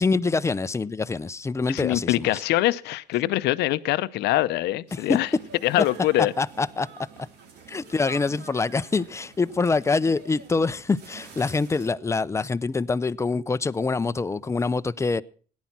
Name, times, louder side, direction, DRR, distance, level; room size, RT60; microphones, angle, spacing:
voice 1, 0.0-2.4 4.9-5.0 6.4-6.9 7.7-15.2, left 4 dB, 15° left, 0.6 m, -25 dB
voice 2, 1.7-5.3 5.6-6.3, left 16 dB, 80° left, 0.7 m, -24 dB
sound 1, 4.9-11.9, right 6 dB, 75° right, 2.8 m, -47 dB
17.5 x 10.5 x 5.9 m
cardioid pair, 110°, 17 cm